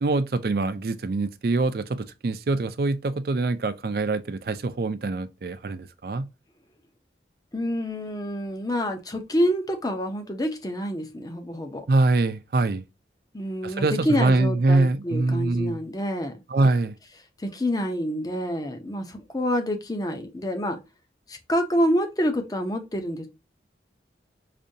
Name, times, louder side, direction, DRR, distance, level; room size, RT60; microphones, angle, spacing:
voice 1, 0.0-6.3 11.9-12.8 13.6-15.8 16.5-16.9, right 2 dB, 55° right, 0.4 m, -24 dB
voice 2, 7.5-11.9 13.3-16.4 17.4-20.8 21.3-23.3, equal, 20° left, 0.6 m, -27 dB
5.0 x 2.7 x 2.6 m
head